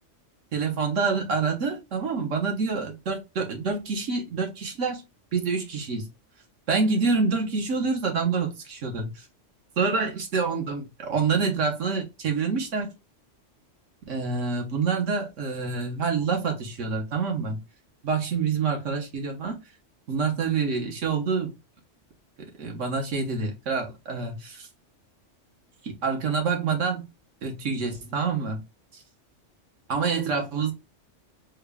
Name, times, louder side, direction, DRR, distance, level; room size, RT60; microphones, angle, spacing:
voice 1, 0.5-5.0 5.3-6.1 6.7-9.2 9.8-12.9 14.1-17.6 18.0-19.6 20.1-21.5 22.6-24.7 25.8-27.1 27.4-28.6 28.9-29.0 29.9-30.7, right 5 dB, 85° right, 1.3 m, -27 dB
3.6 x 2.2 x 3.4 m
omnidirectional pair, 1.2 m